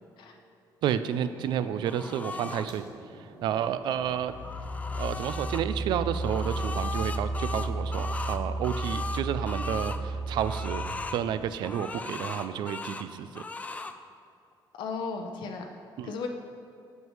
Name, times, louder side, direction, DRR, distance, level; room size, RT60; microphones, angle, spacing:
voice 1, 0.8-2.8 3.4-4.3 5.0-10.9 11.1-13.4 16.0-16.1, right 9 dB, 75° right, 12 dB, 0.3 m, -31 dB
sound 1, 1.3-12.7, right 1 dB, 40° right, 1.2 m, -53 dB
sound 2, 1.9-2.7 4.1-5.6 6.1-10.0 10.4-11.2 11.6-13.1 13.4-14.0, left 3 dB, 20° left, 0.3 m, -38 dB
sound 3, 2.7-2.9 3.8-11.8, right 2 dB, 35° left, 1.0 m, -33 dB
voice 2, 14.7-15.7 16.0-16.3, left 5 dB, 75° left, 3 dB, 0.6 m, -35 dB
7.9 x 7.4 x 3.1 m, 2.6 s
cardioid pair, 135°, 8 cm